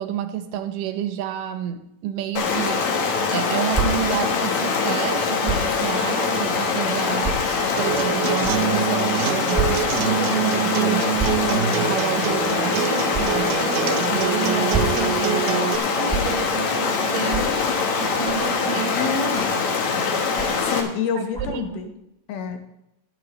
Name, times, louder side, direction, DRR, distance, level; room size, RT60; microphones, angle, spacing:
voice 1, 0.0-2.9 3.3-11.1 11.5-17.6 18.0-19.3 21.2-21.8, right 10 dB, 75° right, 8 dB, 2.2 m, -30 dB
Stream, 2.4-20.8, left 5 dB, 60° left, 2.2 m, -23 dB
sound 1, 3.7-3.9 5.4-5.7 6.4-6.5 7.2-7.3 8.4-8.5 9.5-9.7 10.0-10.1 11.1-11.4 13.1-13.2 14.5-15.0 16.1-16.2 17.2-17.5 18.2-18.5 19.3-19.6 20.3-20.6 21.3-21.6, right 5 dB, ahead, 1.5 m, -26 dB
Acoustic guitar, 7.8-15.8, right 11 dB, 90° right, 2.6 m, -26 dB
voice 2, 18.9-19.5 20.6-21.9 22.3-22.6, left 6 dB, 75° left, 5 dB, 3.1 m, -27 dB
14.5 x 11.0 x 3.2 m, 0.83 s
omnidirectional pair, 4.5 m